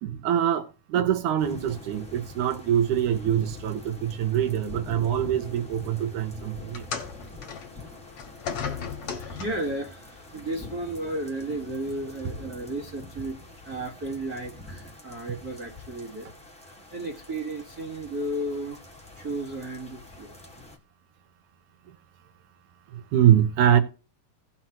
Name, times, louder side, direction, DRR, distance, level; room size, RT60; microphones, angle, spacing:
voice 1, 0.0-6.9 22.9-23.8, right 10 dB, 75° right, 2.4 m, -24 dB
sound 1, 1.4-20.8, left 2 dB, 5° left, 1.2 m, -45 dB
sound 2, 6.7-9.8 10.8-11.0 11.8-11.9, left 6 dB, 55° left, 1.9 m, -36 dB
voice 2, 9.2-13.4 13.6-16.3 16.6-18.8 19.1-20.3, right 1 dB, 40° right, 1.5 m, -34 dB
17.0 x 5.8 x 2.9 m
omnidirectional pair, 3.8 m